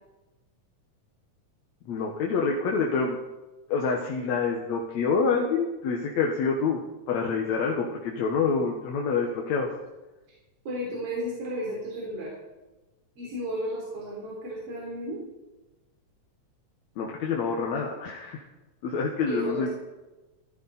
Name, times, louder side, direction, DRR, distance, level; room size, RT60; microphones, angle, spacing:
voice 1, 1.9-3.2 3.7-6.8 7.1-9.7 17.0-18.4 18.8-19.7, left 5 dB, 70° left, 0 dB, 2.5 m, -27 dB
voice 2, 10.6-12.3 13.2-15.2 19.3-19.7, equal, 55° right, -4 dB, 4.4 m, -33 dB
15.5 x 14.5 x 4.2 m, 1.1 s
omnidirectional pair, 3.3 m